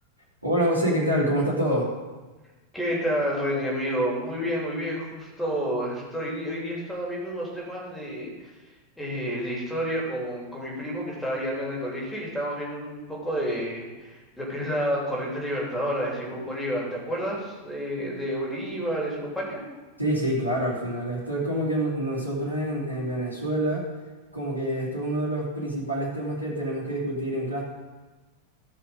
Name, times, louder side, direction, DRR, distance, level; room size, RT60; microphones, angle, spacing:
voice 1, 0.4-1.9 20.0-23.8 24.3-27.6, right 1 dB, 85° right, -5 dB, 2.6 m, -26 dB
voice 2, 2.7-8.5 9.0-19.6, equal, 5° left, -4 dB, 3.4 m, -30 dB
15.0 x 5.8 x 5.3 m, 1.2 s
figure-of-eight pair, 90°, 0 cm